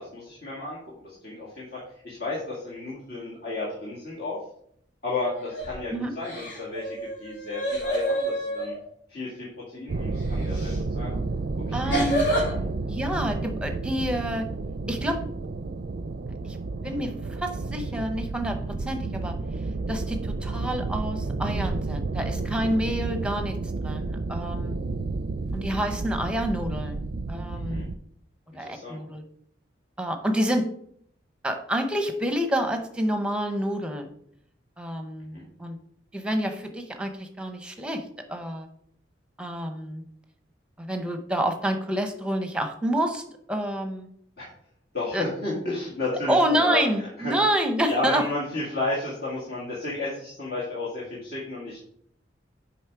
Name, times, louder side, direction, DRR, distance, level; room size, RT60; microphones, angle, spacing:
voice 1, 0.0-4.4 5.0-8.7 9.1-11.2 11.7-12.0 12.3-12.6 22.9-23.0 27.6-27.9 28.6-29.0 35.3-35.4 44.4-44.5 44.9-47.3 47.9-51.8, left 2 dB, 55° left, -6 dB, 1.8 m, -33 dB
sound 1, 5.4-5.8 6.2-8.8 10.5-10.8 11.9-12.5, right 1 dB, 80° left, 3.5 m, -28 dB
sound 2, 9.9-27.9, right 3 dB, 55° right, 0.4 m, -31 dB
voice 2, 11.7-12.2 12.9-14.5 14.9-15.2 16.4-16.6 16.8-19.4 19.9-23.6 23.8-24.8 25.5-27.0 27.3-27.9 28.5-29.2 30.0-30.7 31.4-34.1 34.8-35.8 36.1-38.0 38.3-38.7 39.4-40.0 40.8-44.1 45.1-45.2 46.3-48.3, equal, 5° right, 6 dB, 0.8 m, -28 dB
7.2 x 5.1 x 4.7 m, 0.67 s
head